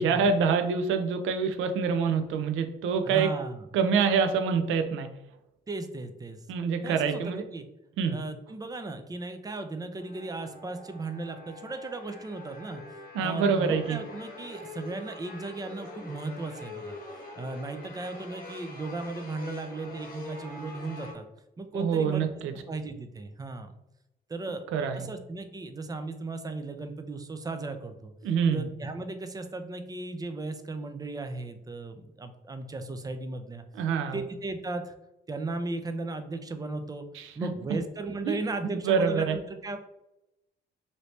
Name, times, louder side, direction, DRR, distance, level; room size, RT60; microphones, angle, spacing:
voice 1, 0.0-3.3 3.7-5.1 6.5-7.4 8.0-8.2 13.1-14.0 21.7-22.5 24.7-25.1 28.2-28.7 33.8-34.2 37.1-37.5 38.3-38.4 38.8-39.4, right 6 dB, 85° right, 7 dB, 0.4 m, -26 dB
voice 2, 3.0-3.6 5.7-6.4 6.8-7.7 8.1-12.8 13.2-17.0 17.4-21.3 21.6-22.3 22.7-23.7 24.3-28.1 28.5-33.6 34.1-34.9 35.3-37.1 37.4-39.8, right 3 dB, 20° right, 8 dB, 0.4 m, -36 dB
sound 1, 10.0-21.1, left 2 dB, 45° left, 1.0 m, -44 dB
3.0 x 2.7 x 3.1 m, 0.89 s
cardioid pair, 90°, 20 cm